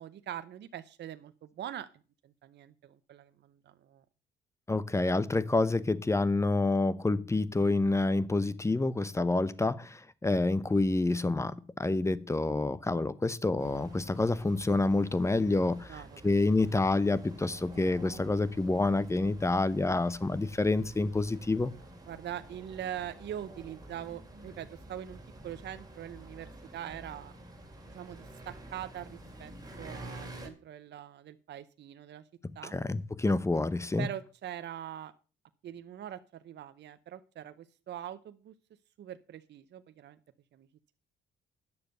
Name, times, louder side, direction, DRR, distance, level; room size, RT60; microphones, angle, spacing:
voice 1, 0.0-1.9 2.2-4.0 15.9-16.3 22.1-27.3 27.9-29.5 29.8-32.2 32.6-32.7 34.0-35.1 35.6-38.5 39.0-40.2 40.5-40.7, right 11 dB, 60° right, 0.7 m, -43 dB
voice 2, 4.7-21.7 32.7-34.1, left 2 dB, 15° left, 0.8 m, -28 dB
sound 1, 13.6-30.5, right 1 dB, 20° right, 2.7 m, -49 dB
9.6 x 6.8 x 6.7 m
cardioid pair, 90°, 20 cm